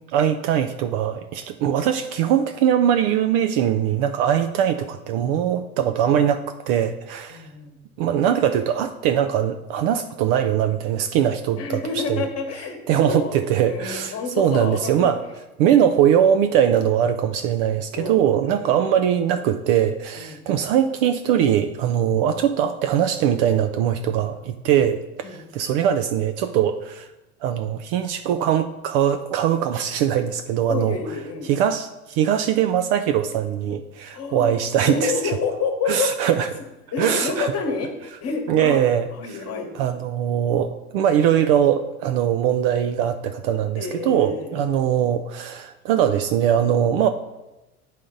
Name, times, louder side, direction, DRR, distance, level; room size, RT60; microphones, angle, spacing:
voice 1, 0.1-7.5 8.0-11.8 12.1-12.3 12.9-15.2 15.6-27.1 27.4-31.0 31.4-35.1 35.9-36.5 37.0-37.5 38.5-39.4 39.7-47.1, right 9 dB, 40° right, 8 dB, 0.4 m, -21 dB
voice 2, 7.3-7.8 11.6-13.4 13.6-15.2 15.7-15.9 18.0-18.8 20.1-20.5 25.2-25.4 30.7-31.5 34.1-36.1 36.9-37.9 38.2-38.8 39.1-39.7 43.8-44.9, left 5 dB, 35° left, 4 dB, 1.3 m, -29 dB
10.0 x 3.8 x 3.7 m, 1.0 s
figure-of-eight pair, 85°, 44 cm